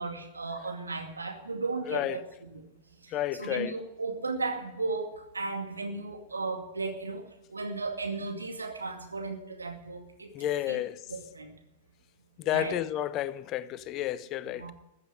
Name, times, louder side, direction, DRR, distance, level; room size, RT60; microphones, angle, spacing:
voice 1, 0.0-2.6 3.0-7.2 7.5-10.3 10.7-10.8 11.1-11.5 12.4-12.8 14.6-14.7, right 3 dB, 85° right, 2.2 m, -35 dB
voice 2, 1.9-2.2 3.1-3.7 10.3-11.0 12.4-14.7, left 12 dB, 35° left, 0.7 m, -31 dB
14.5 x 8.0 x 9.0 m
figure-of-eight pair, 100°, 0 cm